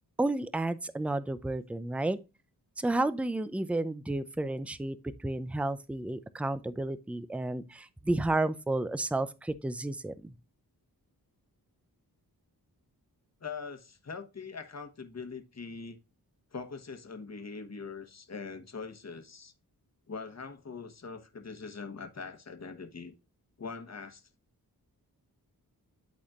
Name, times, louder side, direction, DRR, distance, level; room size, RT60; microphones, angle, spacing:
voice 1, 0.2-2.2 2.8-10.3, right 2 dB, 5° right, 0.5 m, -31 dB
voice 2, 13.4-16.0 16.5-19.5 20.1-23.1 23.6-24.3, left 5 dB, 45° left, 1.2 m, -42 dB
11.5 x 4.2 x 2.4 m
wide cardioid pair, 70°, 38 cm